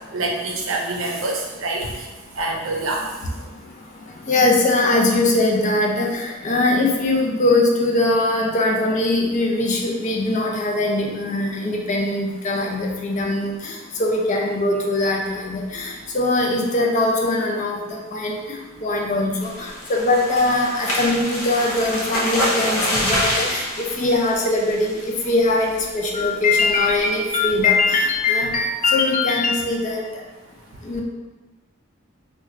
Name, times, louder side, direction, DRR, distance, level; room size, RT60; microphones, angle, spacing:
voice 1, 0.1-1.8 2.4-3.0, right 2 dB, 70° right, 0 dB, 0.6 m, -25 dB
voice 2, 4.3-25.0 25.2-30.0 30.8-31.0, left 2 dB, 35° left, 0 dB, 0.4 m, -21 dB
sound 1, 19.4-25.2 25.6-25.9 26.2-26.3 26.7-27.0, equal, 80° left, 0.6 m, -26 dB
2.4 x 2.2 x 4.0 m, 1.2 s
head